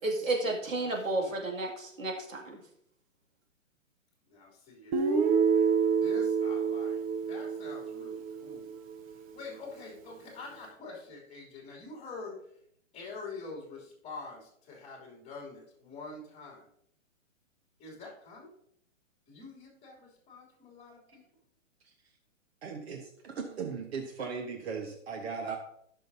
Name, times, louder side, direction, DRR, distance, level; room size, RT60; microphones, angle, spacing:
voice 1, 0.0-2.6, right 2 dB, 90° right, 0 dB, 2.6 m, -32 dB
voice 2, 0.7-1.4 4.3-7.0 7.3-8.7 9.3-12.3 12.9-16.7 17.8-18.5 19.3-21.2, left 3 dB, 15° left, -2 dB, 3.1 m, -46 dB
Guitar, 4.9-8.9, right 6 dB, 30° right, 0.7 m, -28 dB
voice 3, 22.6-25.6, right 5 dB, 55° right, 3 dB, 1.3 m, -38 dB
15.5 x 6.3 x 2.8 m, 0.70 s
hypercardioid pair, 145°, 39 cm